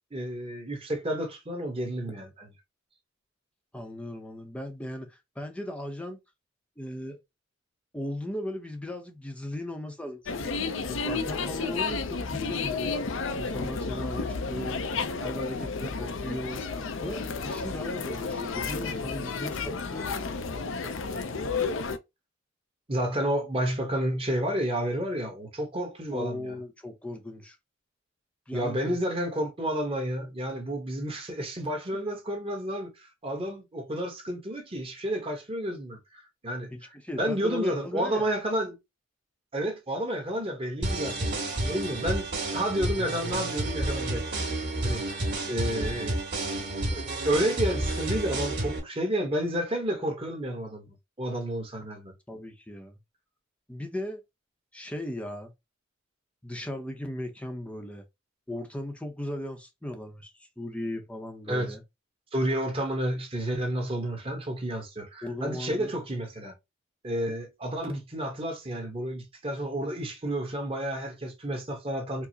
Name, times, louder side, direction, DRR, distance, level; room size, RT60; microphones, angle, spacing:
voice 1, 0.1-2.5 22.9-26.6 28.5-36.7 37.2-38.8 39.5-42.3 42.5-44.4 44.8-45.0 45.5-46.2 46.9-52.1 61.5-61.8 62.3-66.5 67.0-72.3, right 1 dB, 25° right, 1.0 m, -31 dB
voice 2, 3.7-6.2 6.8-7.2 7.9-10.6 10.9-14.8 15.2-16.7 17.0-20.9 26.1-27.6 28.5-29.0 36.7-38.3 52.3-53.0 53.7-54.2 54.7-55.5 56.4-58.0 58.5-61.8 65.2-65.9, left 1 dB, 5° left, 0.6 m, -37 dB
sound 1, 10.3-22.0, left 4 dB, 65° left, 0.5 m, -32 dB
sound 2, 40.8-48.8, right 1 dB, 50° right, 1.9 m, -30 dB
4.7 x 2.0 x 2.7 m
head